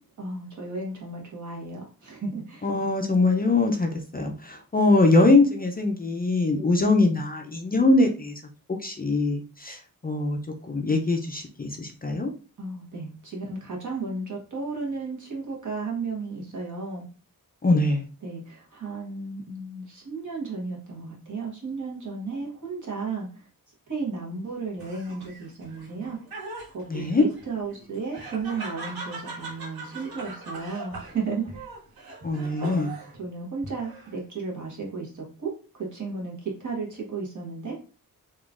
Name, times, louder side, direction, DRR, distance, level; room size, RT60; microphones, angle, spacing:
voice 1, 0.2-2.7 12.6-17.0 18.2-23.3 23.9-26.2 26.7-31.7 33.2-35.5 35.8-37.8, right 4 dB, 55° right, 1.4 m, -34 dB
voice 2, 2.6-8.3 8.8-10.4 10.7-12.3 17.6-18.0 26.9-27.2 32.2-32.9, left 2 dB, 25° left, 0.4 m, -22 dB
Laughter, 24.8-33.2 33.6-34.3, right 2 dB, 85° right, 1.8 m, -40 dB
3.6 x 3.0 x 2.4 m
wide cardioid pair, 125°, 35 cm